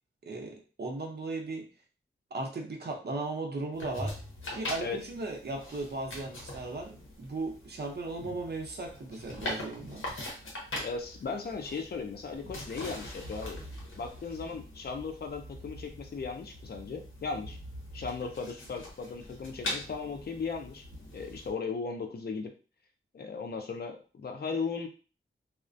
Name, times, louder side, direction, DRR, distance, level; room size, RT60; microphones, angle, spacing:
voice 1, 0.3-1.7 2.3-4.2 4.5-10.1, right 2 dB, 50° right, 1 dB, 0.6 m, -37 dB
sound 1, 3.7-21.5, left 1 dB, 70° left, 0.8 m, -42 dB
voice 2, 10.8-13.6 14.0-17.6 17.9-20.8 21.1-22.5 23.1-24.9, left 5 dB, 50° left, 4 dB, 0.5 m, -37 dB
2.4 x 2.1 x 2.5 m, 0.36 s
wide cardioid pair, 70°, 21 cm